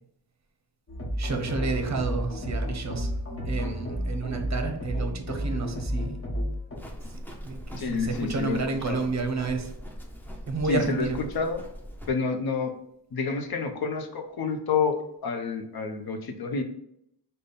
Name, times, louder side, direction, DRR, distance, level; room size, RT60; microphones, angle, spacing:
sound 1, 0.9-6.8, equal, 35° left, 1.1 m, -31 dB
voice 1, 1.2-3.1 3.4-6.3 7.4-9.7 10.5-11.2, right 4 dB, 45° right, 5 dB, 0.7 m, -30 dB
Livestock farm animals working animals, 6.7-12.1, equal, 5° left, 0.5 m, -41 dB
voice 2, 7.8-8.6 8.9-9.0 10.7-11.1 11.3-11.6 12.1-12.7 13.1-16.6, left 5 dB, 65° left, 5 dB, 0.7 m, -28 dB
5.1 x 2.2 x 4.0 m, 0.76 s
wide cardioid pair, 145°, 40 cm